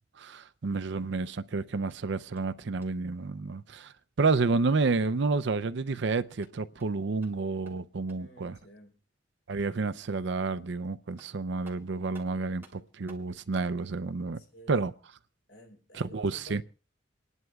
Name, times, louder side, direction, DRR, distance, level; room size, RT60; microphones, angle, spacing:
voice 1, 0.2-3.9 4.2-8.6 9.5-14.4 14.7-14.9 15.9-16.6, right 4 dB, 65° right, 0.6 m, -30 dB
sound 1, 1.9-3.2 6.2-8.4 10.7-10.8 11.2-13.8, right 2 dB, 15° right, 3.1 m, -59 dB
voice 2, 8.2-9.0 14.4-14.9 15.5-16.6, left 1 dB, 75° left, 4.1 m, -52 dB
28.0 x 11.0 x 2.4 m
head